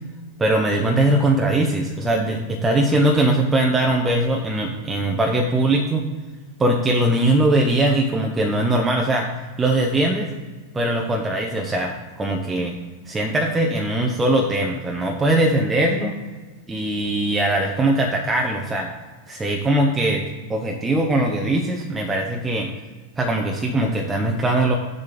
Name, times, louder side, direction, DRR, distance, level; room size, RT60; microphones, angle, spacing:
voice 1, 0.4-6.1 6.6-9.3 9.6-10.3 10.7-12.8 13.1-16.2 16.7-18.9 19.3-20.2 20.5-22.7 23.2-24.7, right 1 dB, 10° right, 1 dB, 0.7 m, -21 dB
7.2 x 6.5 x 3.9 m, 1.4 s
figure-of-eight pair, 90°, 0 cm